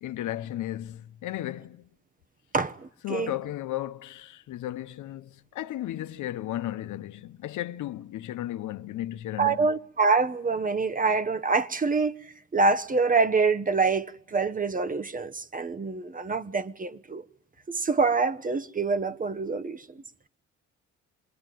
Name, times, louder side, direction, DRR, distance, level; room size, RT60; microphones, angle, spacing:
voice 1, 0.0-1.9 3.0-9.7, left 13 dB, 80° left, 1.0 m, -34 dB
voice 2, 2.5-3.3 9.4-17.2 17.7-20.0, right 4 dB, 25° right, 1.1 m, -26 dB
26.5 x 21.0 x 9.3 m
cardioid pair, 90°, 30 cm